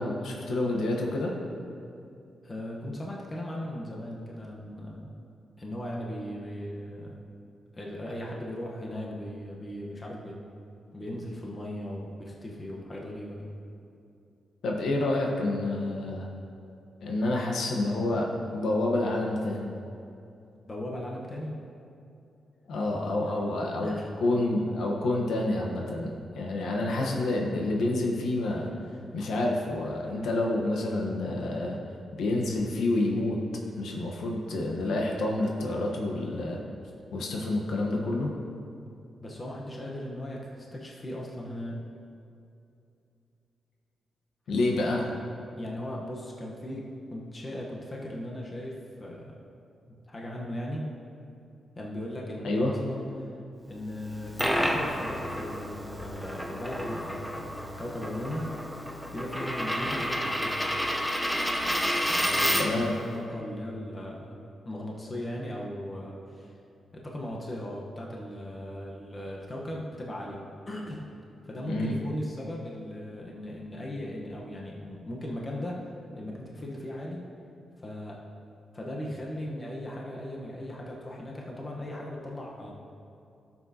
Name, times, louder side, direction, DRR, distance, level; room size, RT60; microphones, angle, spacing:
voice 1, 0.0-1.3 14.6-16.3 17.0-18.3 18.5-19.7 22.7-28.7 29.1-31.8 32.2-33.4 33.8-36.6 37.1-38.3 44.5-45.1 52.4-52.7 62.6-62.9 71.6-71.9, left 2 dB, 80° left, -1 dB, 1.1 m, -28 dB
voice 2, 2.4-5.1 5.6-7.1 7.7-10.4 10.9-13.5 20.7-21.6 23.1-23.5 23.8-24.1 39.2-41.8 45.6-49.3 49.9-50.8 51.8-53.3 53.7-58.8 59.1-60.5 62.1-64.3 64.6-66.5 66.9-71.1 71.4-77.2 77.8-78.2 78.7-82.7, left 1 dB, 25° left, -3 dB, 1.0 m, -38 dB
Coin (dropping), 54.0-62.9, equal, ahead, 0.7 m, -30 dB
13.5 x 7.3 x 2.8 m, 2.6 s
cardioid pair, 130°, 0 cm